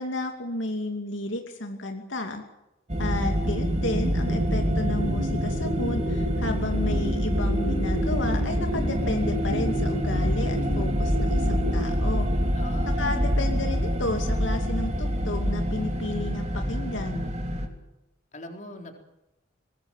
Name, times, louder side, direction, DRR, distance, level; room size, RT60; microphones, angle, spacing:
voice 1, 0.0-2.4 3.0-12.3 12.8-17.2, left 2 dB, 75° left, 4 dB, 2.6 m, -32 dB
sound 1, 2.9-17.7, equal, 35° right, 3.1 m, -26 dB
sound 2, 4.1-11.9, equal, 85° right, 7.8 m, -34 dB
voice 2, 12.5-13.0 18.3-19.0, left 1 dB, 40° left, 4 dB, 4.1 m, -41 dB
23.0 x 21.0 x 7.4 m, 0.92 s
head